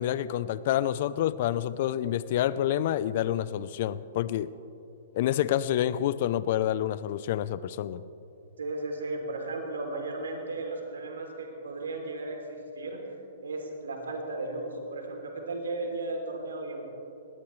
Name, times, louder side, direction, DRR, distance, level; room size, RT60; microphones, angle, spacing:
voice 1, 0.0-4.5 5.1-8.0, left 11 dB, 55° left, 17 dB, 0.6 m, -28 dB
voice 2, 8.6-13.0 13.4-16.9, right 2 dB, 80° right, 2 dB, 3.2 m, -35 dB
21.0 x 18.0 x 3.3 m, 2.8 s
hypercardioid pair, 120°, 0 cm